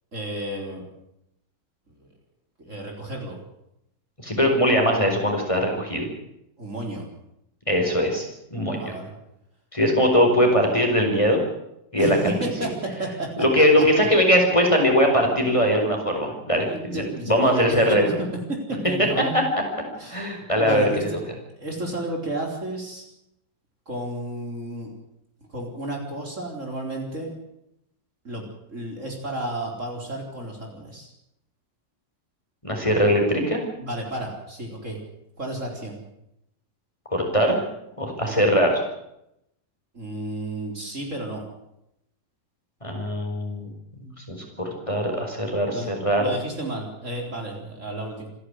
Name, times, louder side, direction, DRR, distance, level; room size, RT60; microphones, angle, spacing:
voice 1, 0.1-0.9 2.6-3.4 6.6-7.1 8.8-9.1 12.0-13.3 13.8-13.9 16.6-18.3 18.7-19.3 20.0-21.2 21.6-23.1 23.9-24.9 25.5-27.3 28.2-28.4 28.7-31.1 33.8-35.0 35.4-36.0 38.2-38.4 39.9-41.4 45.7-45.9 46.2-48.3, right 1 dB, 40° right, 1 dB, 4.5 m, -32 dB
voice 2, 4.2-6.1 7.7-8.9 9.7-11.4 11.9-12.5 13.4-18.0 19.3-19.4 20.1-21.1 32.6-33.6 37.1-37.6 38.0-38.8 42.8-43.7 44.3-46.2, equal, 15° left, 2 dB, 4.8 m, -21 dB
27.0 x 11.5 x 9.6 m, 0.82 s
omnidirectional pair, 2.0 m